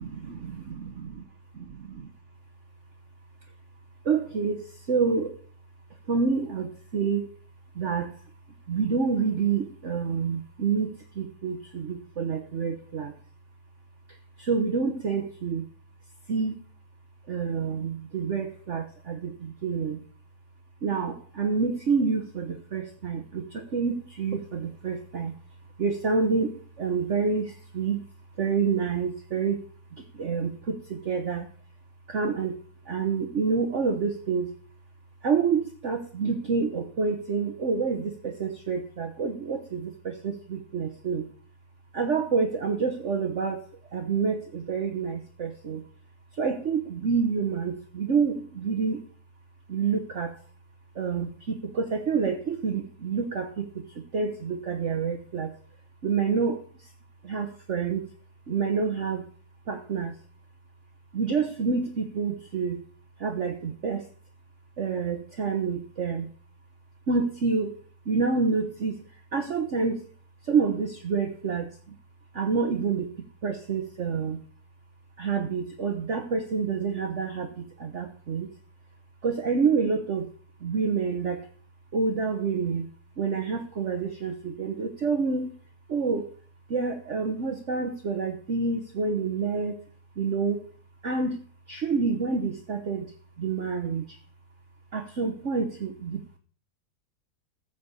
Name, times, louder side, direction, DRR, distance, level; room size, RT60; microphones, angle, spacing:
voice 1, 1.6-2.1 4.0-5.4 6.1-7.3 7.7-8.1 8.7-13.1 14.4-15.6 16.3-16.6 17.3-20.0 20.8-25.3 25.8-28.0 28.4-29.6 30.0-31.5 32.1-32.6 32.9-34.5 35.2-41.3 41.9-43.7 43.9-45.8 46.3-49.0 49.7-50.4 50.9-53.7 53.9-55.5 56.0-56.9 57.2-58.1 58.5-59.3 59.7-60.1 61.1-62.8 63.2-64.0 64.8-66.3 67.1-67.7 68.1-69.0 69.3-70.0 70.4-71.9 72.3-73.2 73.4-74.4 75.2-78.5 79.2-80.3 80.6-81.5 81.9-82.9 83.2-85.5 85.9-86.3 86.7-89.8 90.2-90.6 91.0-91.4 91.7-93.1 93.4-94.2 94.9-96.2, right 5 dB, 45° right, 5 dB, 1.4 m, -28 dB
14.5 x 5.2 x 8.1 m, 0.43 s
omnidirectional pair, 1.8 m